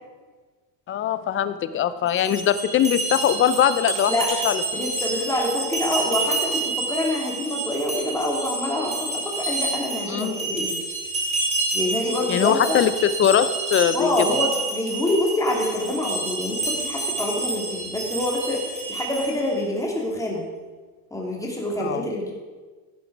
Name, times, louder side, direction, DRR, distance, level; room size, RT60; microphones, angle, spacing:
voice 1, 0.9-4.1 4.4-4.6 10.1-10.4 12.3-14.3 21.8-22.1, left 9 dB, 30° left, 13 dB, 0.6 m, -21 dB
sound 1, 2.1-19.5, right 2 dB, 15° right, 3.5 m, -29 dB
voice 2, 4.7-10.9 11.7-12.8 13.9-20.4 21.1-22.3, left 1 dB, 5° left, -2 dB, 2.7 m, -26 dB
16.5 x 6.0 x 4.8 m, 1.3 s
supercardioid pair, 125°, 43 cm